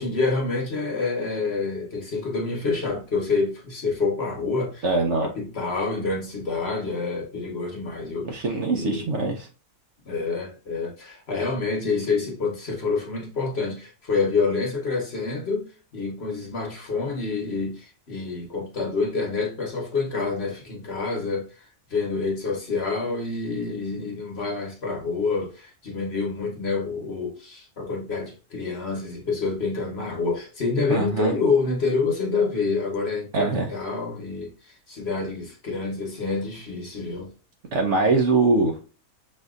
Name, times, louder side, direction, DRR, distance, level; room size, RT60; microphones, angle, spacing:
voice 1, 0.0-4.8 5.2-8.5 8.7-9.1 10.0-37.3, left 4 dB, 45° left, 1.1 m, -27 dB
voice 2, 4.8-5.3 8.2-9.5 30.9-31.3 33.3-33.7 37.7-38.8, right 3 dB, 60° right, 0.8 m, -22 dB
6.3 x 2.7 x 2.4 m
omnidirectional pair, 1.6 m